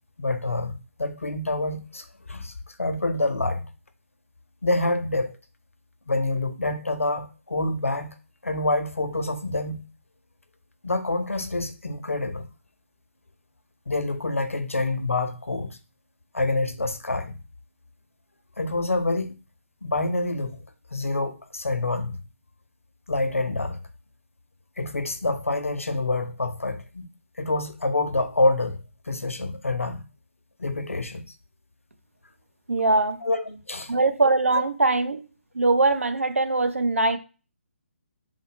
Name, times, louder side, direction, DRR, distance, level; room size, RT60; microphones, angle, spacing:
voice 1, 0.2-0.7 1.0-3.7 4.6-5.4 6.1-8.1 8.4-9.8 10.8-12.5 13.9-15.8 16.3-17.4 18.6-19.4 19.8-20.6 20.9-22.2 23.1-23.8 24.8-27.1 27.4-30.0 30.6-31.2 33.2-33.9 34.5-34.6, left 2 dB, 80° left, 0.6 m, -27 dB
voice 2, 32.7-33.2 33.9-35.2 35.6-37.2, right 3 dB, 80° right, 0.6 m, -21 dB
3.9 x 2.1 x 3.2 m
figure-of-eight pair, 145°, 7 cm